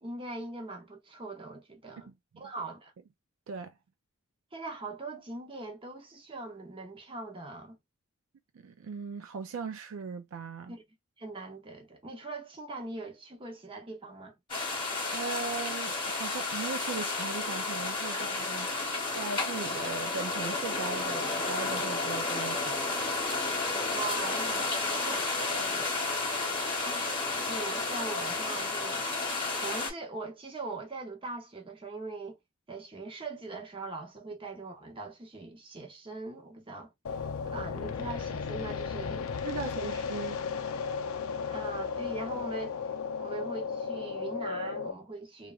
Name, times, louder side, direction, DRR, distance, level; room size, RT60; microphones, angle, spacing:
voice 1, 0.0-2.9 4.5-7.8 10.7-10.8 11.2-14.4 18.1-18.2 23.9-25.3 25.5-25.9 26.8-29.2 29.6-32.4 32.7-36.9 37.4-39.4 39.6-39.9 41.5-42.8 43.2-45.5, right 3 dB, 25° right, 0.7 m, -41 dB
voice 2, 2.1-2.4 3.5-3.7 8.5-10.8 15.1-23.0 39.4-40.4, right 4 dB, 70° right, 0.4 m, -39 dB
sound 1, 14.5-29.9, left 3 dB, 25° left, 1.1 m, -32 dB
sound 2, 37.0-44.9, left 5 dB, 75° left, 0.5 m, -35 dB
2.9 x 2.4 x 2.3 m
head